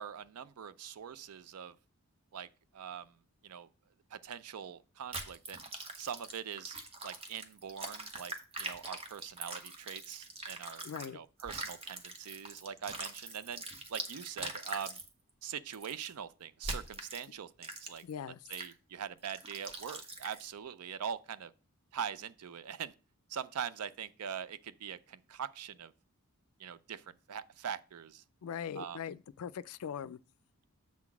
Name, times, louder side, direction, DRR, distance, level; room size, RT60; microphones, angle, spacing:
voice 1, 0.0-1.8 2.3-3.1 3.4-3.7 4.1-5.6 6.0-6.8 7.0-10.9 11.1-13.6 13.9-15.0 15.4-18.0 18.5-21.5 21.9-22.9 23.3-25.9 26.6-28.2 28.8-29.0, right 8 dB, 85° right, 0.5 m, -42 dB
sound 1, 5.1-11.1 11.4-15.1 15.7-16.1 16.6-17.3 17.6-18.1 18.5-18.7 19.2-20.5, right 2 dB, 25° right, 0.8 m, -43 dB
voice 2, 10.8-11.2 18.0-18.4 28.4-30.2, left 8 dB, 75° left, 0.4 m, -41 dB
7.4 x 3.8 x 6.0 m
head